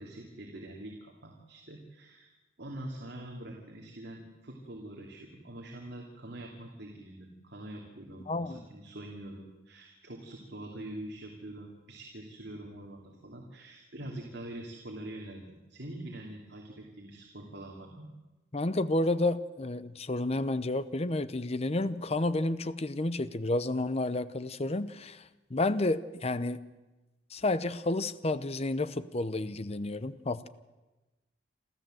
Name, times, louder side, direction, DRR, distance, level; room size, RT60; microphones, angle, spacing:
voice 1, 0.0-2.3 2.6-18.1, right 1 dB, 60° right, -1 dB, 2.9 m, -44 dB
voice 2, 8.3-8.6 18.5-26.6 27.3-30.5, left 2 dB, 35° left, 14 dB, 0.8 m, -31 dB
27.5 x 14.0 x 7.8 m, 1.1 s
head